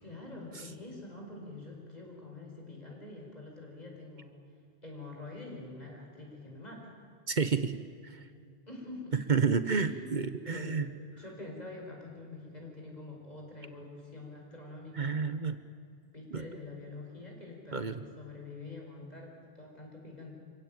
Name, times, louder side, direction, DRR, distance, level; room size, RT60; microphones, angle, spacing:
voice 1, 0.0-4.3 4.8-6.9 8.7-9.4 9.8-10.1 10.5-10.9 11.2-15.2 16.1-20.4, left 2 dB, 40° left, 0 dB, 5.3 m, -46 dB
voice 2, 7.3-8.2 9.3-10.9 15.0-15.6 16.3-16.4 17.7-18.0, right 5 dB, 50° right, 11 dB, 1.1 m, -30 dB
25.5 x 17.0 x 9.0 m, 2.4 s
omnidirectional pair, 1.0 m